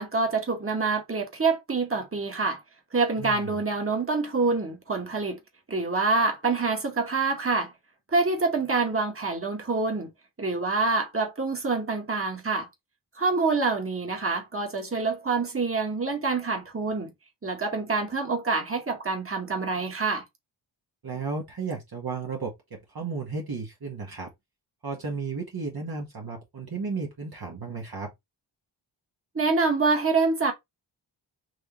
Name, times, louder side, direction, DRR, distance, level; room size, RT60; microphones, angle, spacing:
voice 1, 0.0-2.6 2.9-5.4 5.7-7.7 8.1-10.1 10.4-12.7 13.2-17.1 17.4-20.2 29.4-30.5, right 3 dB, 25° right, 1.8 m, -26 dB
voice 2, 3.2-3.6 21.0-24.3 24.8-28.1, right 4 dB, 50° right, 1.6 m, -34 dB
4.8 x 2.8 x 3.1 m
cardioid pair, 45°, 49 cm